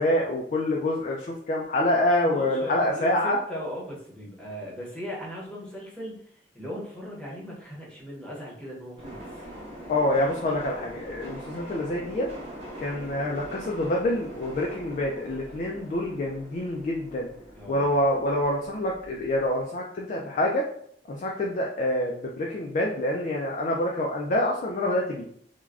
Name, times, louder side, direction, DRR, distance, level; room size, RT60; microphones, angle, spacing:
voice 1, 0.0-3.4 9.9-12.3 12.8-17.3 17.7-20.6 21.1-25.2, left 1 dB, 45° left, -1 dB, 0.4 m, -26 dB
voice 2, 2.2-6.2 6.5-9.4 17.5-18.0, equal, 5° left, -5 dB, 0.8 m, -38 dB
sound 1, 9.0-19.6, right 1 dB, 35° right, 0.9 m, -43 dB
3.2 x 2.2 x 2.4 m, 0.64 s
head